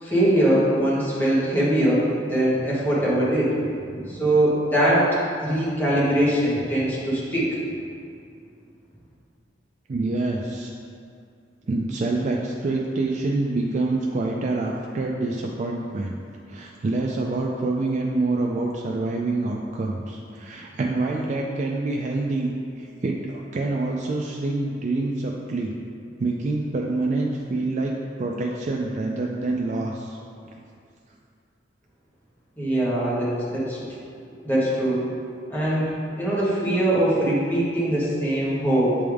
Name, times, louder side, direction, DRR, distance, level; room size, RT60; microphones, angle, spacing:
voice 1, 0.0-5.1 5.4-7.6 32.6-33.8 34.4-35.0 35.5-39.0, right 1 dB, 10° left, -8 dB, 1.4 m, -22 dB
voice 2, 9.9-10.7 11.7-16.2 16.5-22.5 22.8-25.7 26.2-27.9 28.2-30.2 30.5-30.6, right 2 dB, 40° right, -1 dB, 0.4 m, -26 dB
7.7 x 3.5 x 3.5 m, 2.3 s
head